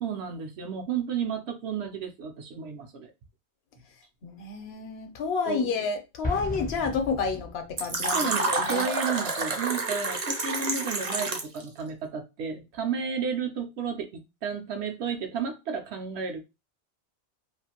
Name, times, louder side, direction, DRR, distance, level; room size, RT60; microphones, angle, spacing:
voice 1, 0.0-3.1 5.5-5.7 8.1-16.4, right 6 dB, 75° right, 0.8 m, -32 dB
voice 2, 4.2-8.9, left 5 dB, 70° left, 0.8 m, -30 dB
Explosion, 6.2-8.0, left 2 dB, 15° left, 0.4 m, -35 dB
Fill (with liquid), 7.8-11.6, right 3 dB, 45° right, 0.5 m, -29 dB
2.5 x 2.4 x 2.8 m
omnidirectional pair, 1.1 m